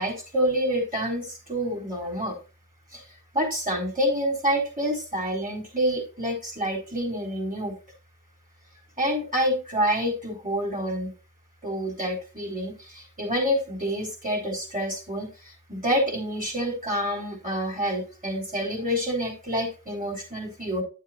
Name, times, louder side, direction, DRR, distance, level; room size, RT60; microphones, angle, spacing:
voice 1, 0.0-2.4 2.9-3.0 3.3-7.7 9.0-11.1 11.6-20.8, equal, 25° right, 1 dB, 3.9 m, -27 dB
9.8 x 7.3 x 2.8 m, 0.31 s
wide cardioid pair, 55°, 31 cm